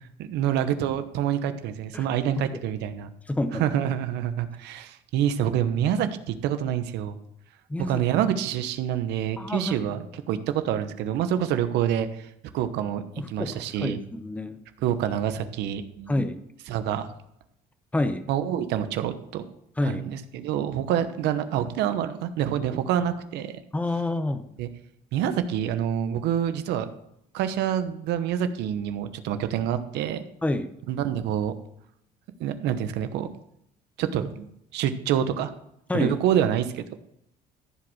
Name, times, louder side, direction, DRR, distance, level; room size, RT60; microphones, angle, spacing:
voice 1, 0.2-3.1 3.5-7.2 7.8-12.3 12.5-14.0 14.8-16.1 16.7-17.1 18.3-19.4 19.8-23.5 24.6-24.7 25.1-26.9 27.3-30.2 30.9-31.5 32.4-33.3 34.0-35.5 35.9-36.9, right 10 dB, 85° right, 10 dB, 1.1 m, -27 dB
voice 2, 3.3-3.6 7.7-8.0 9.4-9.9 13.2-14.6 16.1-16.4 17.9-18.2 19.8-20.0 23.7-24.4 30.4-30.7 35.9-36.1, left 1 dB, 10° left, 10 dB, 0.8 m, -28 dB
14.5 x 5.1 x 6.4 m, 0.76 s
cardioid pair, 110°, 17 cm